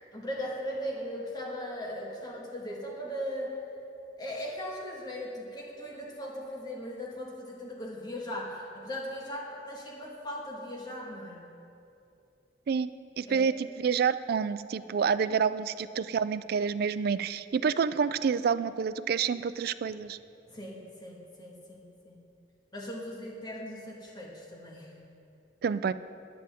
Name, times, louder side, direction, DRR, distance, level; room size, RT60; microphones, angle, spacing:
voice 1, 0.1-3.6 4.2-11.5 13.3-13.4 20.5-22.2 22.7-24.9, equal, 25° left, -2 dB, 1.6 m, -38 dB
voice 2, 13.2-20.2 25.6-25.9, right 6 dB, 60° right, 14 dB, 0.3 m, -28 dB
13.5 x 10.5 x 3.5 m, 2.7 s
head